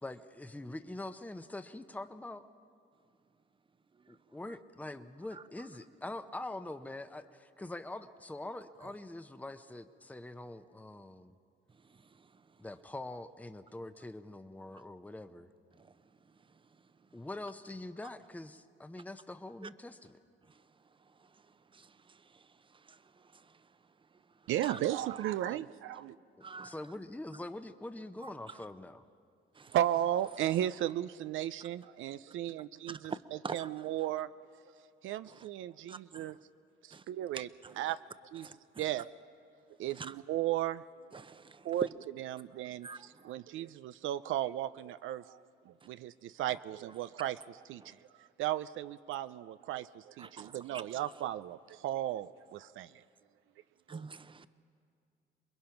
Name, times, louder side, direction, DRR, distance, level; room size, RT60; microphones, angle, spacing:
voice 1, 0.0-2.4 4.1-11.4 12.6-15.5 17.1-20.2 26.6-29.0, left 2 dB, 5° left, 9 dB, 0.8 m, -44 dB
voice 2, 24.5-26.2 29.7-34.3 35.0-36.4 36.8-37.5 37.8-38.0 38.3-38.5 38.8-39.1 39.8-40.8 41.6-41.9 42.2-53.0 53.9-54.0, right 12 dB, 80° right, 13 dB, 0.5 m, -35 dB
voice 3, 26.4-26.7 29.6-29.8 32.9-33.7 35.9-36.3 36.9-37.0 37.3-37.4 38.4-38.5 40.0-40.1 41.1-41.6 42.8-43.1 47.8-47.9 50.2-50.8 53.9-54.5, right 4 dB, 25° right, 13 dB, 0.8 m, -44 dB
28.0 x 21.5 x 5.9 m, 2.3 s
cardioid pair, 90°, 20 cm